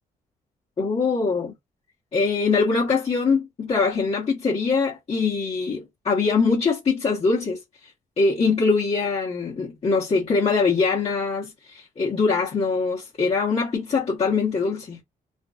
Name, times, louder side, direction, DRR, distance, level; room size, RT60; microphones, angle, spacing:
voice 1, 0.8-1.5 2.1-7.6 8.2-15.0, left 4 dB, 45° left, 1.0 m, -23 dB
2.5 x 2.2 x 2.3 m
cardioid pair, 90°, 15 cm